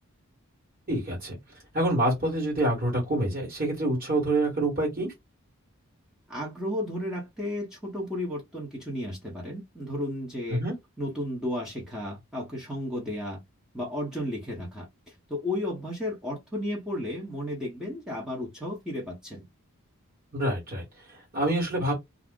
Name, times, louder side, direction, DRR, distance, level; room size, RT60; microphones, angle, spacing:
voice 1, 0.9-1.4 1.7-5.1 10.5-10.7 20.3-21.9, right 1 dB, 40° right, 1.4 m, -27 dB
voice 2, 6.3-10.6 11.0-13.4 13.7-19.5, left 1 dB, 5° right, 0.7 m, -33 dB
2.4 x 2.0 x 3.5 m
head